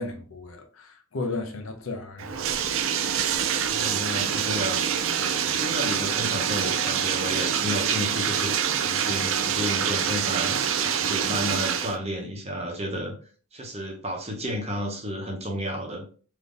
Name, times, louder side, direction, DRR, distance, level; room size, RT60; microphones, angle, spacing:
voice 1, 0.0-2.6, left 3 dB, 75° left, 0.7 m, -34 dB
Bathtub (filling or washing), 2.2-12.0, right 8 dB, 70° right, 0.4 m, -26 dB
voice 2, 3.6-10.5 10.8-13.2 13.5-16.0, equal, 30° right, 0.9 m, -32 dB
3.5 x 2.7 x 2.5 m
head